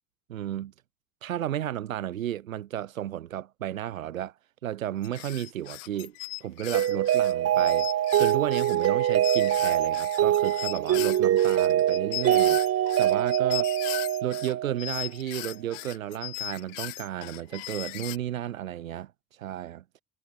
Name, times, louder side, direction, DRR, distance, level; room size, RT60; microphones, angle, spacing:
voice 1, 0.3-0.7 1.2-4.3 4.6-6.2 6.4-7.9 8.2-13.7 14.2-19.8, right 11 dB, 85° right, 0.6 m, -33 dB
sound 1, 5.0-14.5 14.8-18.2, left 26 dB, 70° left, 1.2 m, -38 dB
Mallet percussion, 6.7-14.9, right 11 dB, 40° right, 0.8 m, -24 dB
figure-of-eight pair, 50°, 39 cm